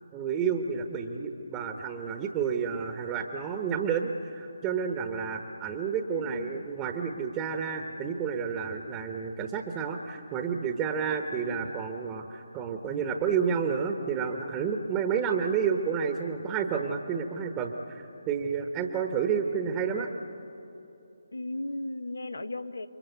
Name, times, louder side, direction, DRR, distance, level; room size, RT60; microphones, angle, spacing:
voice 1, 0.1-20.1, right 6 dB, 20° right, 5 dB, 1.2 m, -30 dB
voice 2, 6.1-6.7 11.4-11.7 21.3-22.9, left 2 dB, 70° left, 12 dB, 1.2 m, -36 dB
28.5 x 23.0 x 8.2 m, 3.0 s
figure-of-eight pair, 145°, 0 cm